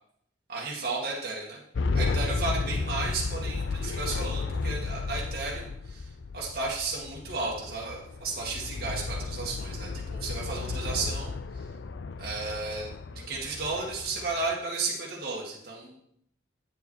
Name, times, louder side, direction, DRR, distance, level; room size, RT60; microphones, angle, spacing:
voice 1, 0.5-1.6 1.9-11.7 12.2-16.0, right 3 dB, 55° right, -4 dB, 2.1 m, -34 dB
sound 1, 1.7-14.6, left 4 dB, 80° left, 0.5 m, -33 dB
9.3 x 7.1 x 4.7 m, 0.70 s
head